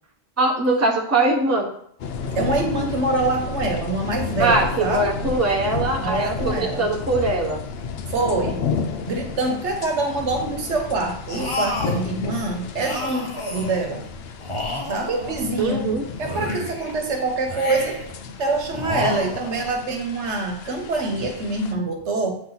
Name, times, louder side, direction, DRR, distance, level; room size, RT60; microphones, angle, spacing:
voice 1, 0.4-1.7 4.4-7.6 15.6-16.0, right 2 dB, 15° right, -1 dB, 0.9 m, -21 dB
sound 1, 2.0-21.7, left 5 dB, 65° left, 0.8 m, -32 dB
voice 2, 2.3-5.1 6.0-6.9 8.1-8.6 9.1-14.0 14.9-15.9 16.2-18.0 18.4-22.4, right 3 dB, 85° right, 3 dB, 1.3 m, -25 dB
sound 2, 11.3-12.1 12.8-13.9 14.4-15.8 16.2-17.0 17.5-18.2 18.7-19.7, left 2 dB, 30° left, 0.9 m, -30 dB
8.6 x 2.9 x 4.0 m, 0.66 s
omnidirectional pair, 1.1 m